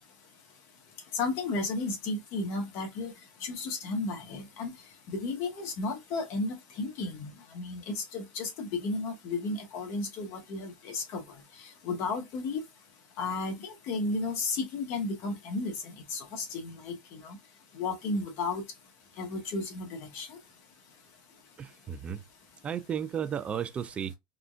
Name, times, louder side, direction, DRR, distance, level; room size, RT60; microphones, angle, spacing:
voice 1, 1.1-3.1 3.4-12.6 13.2-17.4 17.7-18.6 19.1-20.4, left 3 dB, 50° left, 1.3 m, -34 dB
voice 2, 21.6-22.2 22.6-24.1, right 8 dB, 25° right, 0.4 m, -34 dB
3.7 x 2.3 x 2.4 m
supercardioid pair, 125°, 5 cm